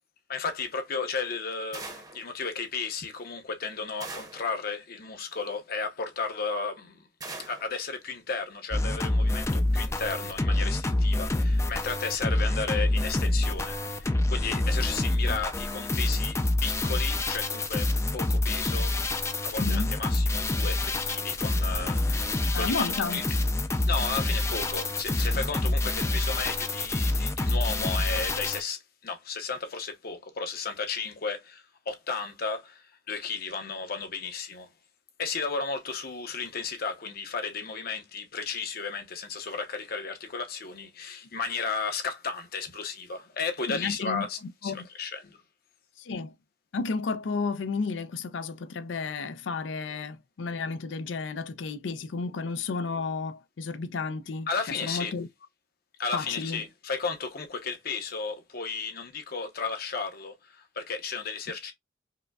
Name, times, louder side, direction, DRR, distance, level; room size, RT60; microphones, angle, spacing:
voice 1, 0.3-7.1 7.5-18.9 19.4-22.9 23.1-23.2 23.9-34.7 35.2-45.4 54.5-55.2 56.0-61.7, left 5 dB, 55° left, 0.8 m, -34 dB
sound 1, 1.7-2.3 4.0-4.5 7.2-7.7, right 3 dB, 20° right, 0.8 m, -41 dB
sound 2, 8.7-28.6, left 2 dB, 15° left, 0.4 m, -27 dB
voice 2, 19.6-19.9 22.5-23.2 43.7-44.2 44.6-44.9 46.0-46.3 46.7-54.5 54.8-55.3 56.1-56.6, left 4 dB, 80° left, 0.4 m, -32 dB
4.9 x 2.2 x 2.3 m
head